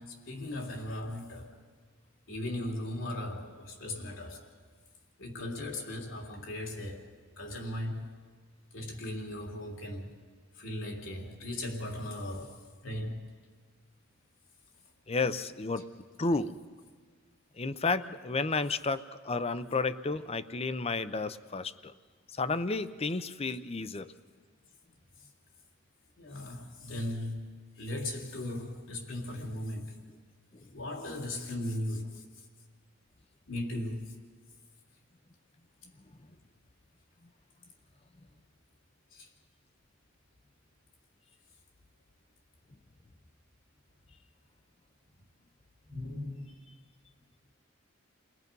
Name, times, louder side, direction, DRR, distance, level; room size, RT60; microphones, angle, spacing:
voice 1, 0.0-1.6 2.3-4.5 5.2-7.1 7.4-8.1 8.7-10.2 10.5-13.3 25.2-25.3 26.2-27.5 27.8-30.0 30.7-32.4 33.5-34.2 39.1-39.3 45.8-46.8, left 1 dB, 75° left, 3.3 m, -38 dB
voice 2, 15.1-15.9 16.2-16.5 17.6-21.9 22.4-24.1, left 3 dB, 30° left, 0.6 m, -32 dB
30.0 x 20.5 x 5.4 m
head